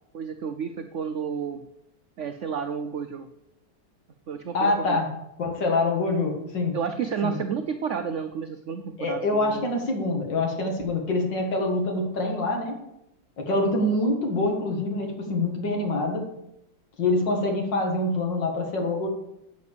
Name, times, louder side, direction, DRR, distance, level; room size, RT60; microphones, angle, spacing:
voice 1, 0.1-1.6 2.2-3.3 4.3-5.0 6.7-9.7, right 7 dB, 75° right, 8 dB, 0.6 m, -31 dB
voice 2, 4.5-5.1 5.4-6.8 7.2-7.4 9.0-12.7 13.4-16.2 17.0-19.1, left 2 dB, 80° left, 2 dB, 2.7 m, -25 dB
8.1 x 6.8 x 6.8 m, 0.82 s
omnidirectional pair, 1.9 m